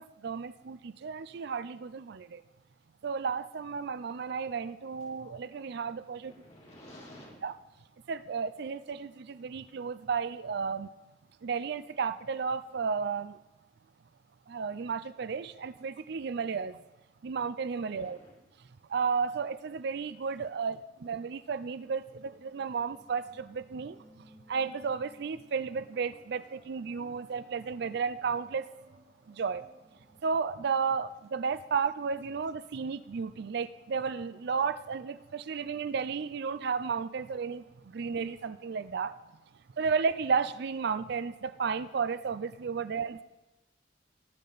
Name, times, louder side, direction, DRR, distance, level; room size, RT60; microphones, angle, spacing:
voice 1, 0.0-2.4 3.0-6.3 7.4-7.5 8.1-10.9 11.4-13.4 14.5-16.8 17.2-18.2 18.9-24.0 24.5-28.7 29.3-29.6 30.2-37.6 37.9-39.1 39.8-43.2, right 5 dB, 60° right, 0.4 m, -33 dB
voice 2, 6.2-7.7 17.9-18.5 39.7-39.8 42.9-43.2, left 1 dB, 40° left, 4.0 m, -53 dB
sound 1, 22.3-30.3, equal, 25° right, 2.8 m, -60 dB
19.0 x 8.4 x 4.0 m
head